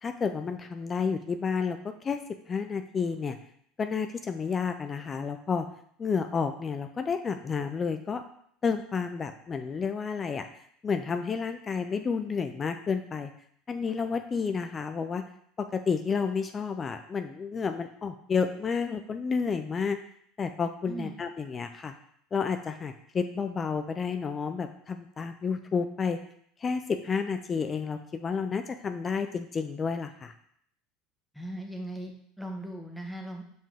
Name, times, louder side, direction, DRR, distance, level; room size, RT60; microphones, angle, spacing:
voice 1, 0.0-2.2 2.5-3.4 3.8-5.7 6.0-8.2 8.6-10.5 10.8-13.3 13.7-15.2 15.6-20.0 20.4-21.9 22.3-26.2 26.6-30.3, left 5 dB, 30° left, 8 dB, 0.4 m, -30 dB
voice 2, 20.8-21.2 31.3-33.4, right 1 dB, ahead, 1 dB, 1.3 m, -38 dB
5.3 x 5.2 x 3.6 m, 0.66 s
hypercardioid pair, 85°, 0 cm